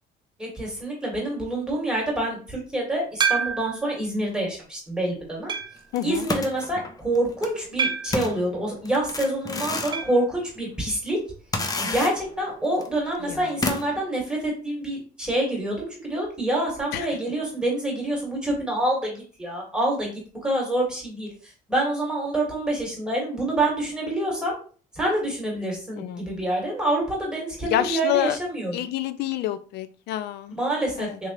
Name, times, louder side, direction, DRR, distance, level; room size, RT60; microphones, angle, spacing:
voice 1, 0.4-5.5 6.0-11.2 11.8-20.1 20.4-21.3 21.7-24.5 24.9-28.7 30.5-31.3, right 1 dB, 5° right, -2 dB, 1.7 m, -27 dB
sound 1, 3.2-3.9 4.5-4.6 5.5-5.9 7.8-8.3 9.9-10.2 10.5-10.6 10.8-10.9 12.9-13.0, right 6 dB, 25° right, 0.6 m, -27 dB
voice 2, 5.9-6.3 13.2-13.5 16.9-17.1 26.0-26.3 27.6-28.4 28.7-30.5 31.0-31.2, left 12 dB, 80° left, 12 dB, 0.4 m, -28 dB
sound 2, 6.0-7.5 8.1-10.1 10.5-10.6 11.5-12.4 12.8-12.9 13.6-14.0, left 3 dB, 20° left, 0.5 m, -30 dB
3.6 x 2.9 x 2.9 m, 0.40 s
cardioid pair, 110°, 17 cm